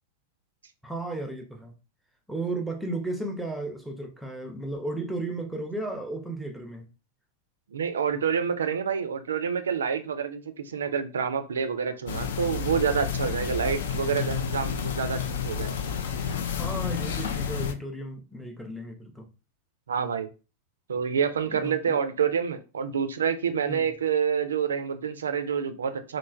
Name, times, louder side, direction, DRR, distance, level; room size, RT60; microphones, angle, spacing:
voice 1, 0.8-1.7 2.3-6.9 16.3-19.3 21.5-22.0 23.7-23.9, right 2 dB, ahead, 0.5 m, -34 dB
voice 2, 7.7-15.7 19.9-20.3 20.9-26.2, right 7 dB, 70° right, 0.3 m, -28 dB
sound 1, 12.1-17.7, left 7 dB, 60° left, 0.3 m, -30 dB
3.1 x 2.1 x 2.4 m
figure-of-eight pair, 90°, 0 cm